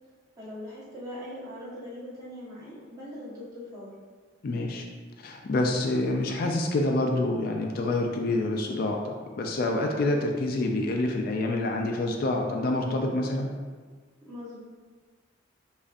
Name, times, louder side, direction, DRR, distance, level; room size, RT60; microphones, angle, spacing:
voice 1, 0.4-3.9 14.2-14.6, left 1 dB, 20° right, -9 dB, 1.1 m, -41 dB
voice 2, 4.4-4.9 5.2-13.5, left 2 dB, 50° left, 2 dB, 0.3 m, -27 dB
5.0 x 2.5 x 2.5 m, 1.5 s
head